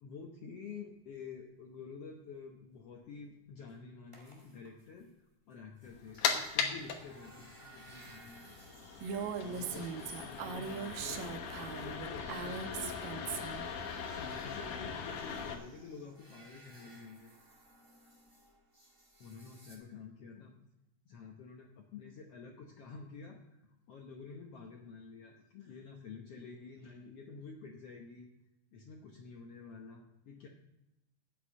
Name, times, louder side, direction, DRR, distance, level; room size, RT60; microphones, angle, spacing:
voice 1, 0.0-5.1 5.5-8.9 9.4-11.3 11.8-13.4 14.1-17.3 19.2-20.5 21.0-28.3 28.7-30.5, left 5 dB, 90° left, 1 dB, 1.3 m, -49 dB
sound 1, 2.8-2.9 3.7-3.8 4.1-5.1 5.5-5.6 5.8-19.8, right 1 dB, 25° right, 0.6 m, -58 dB
sound 2, 5.8-15.5, left 6 dB, 65° left, 2.4 m, -39 dB
Female speech woman speaking, 9.0-13.7, right 6 dB, 75° right, 2.4 m, -40 dB
8.6 x 7.9 x 8.6 m, 0.92 s
omnidirectional pair, 4.2 m